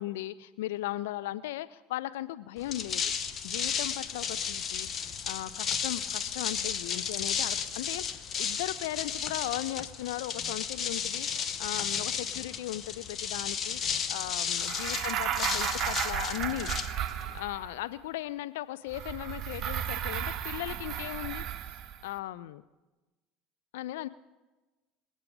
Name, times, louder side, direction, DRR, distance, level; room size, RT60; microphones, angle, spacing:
voice 1, 0.0-16.7 17.3-21.5 22.0-22.6 23.7-24.1, left 15 dB, 65° left, 15 dB, 0.4 m, -37 dB
sound 1, 2.6-17.4, left 7 dB, 35° left, 1.1 m, -33 dB
sound 2, 14.6-17.8 18.9-22.1, right 10 dB, 40° right, 0.8 m, -34 dB
26.5 x 8.9 x 5.2 m, 1.2 s
figure-of-eight pair, 65°, 0 cm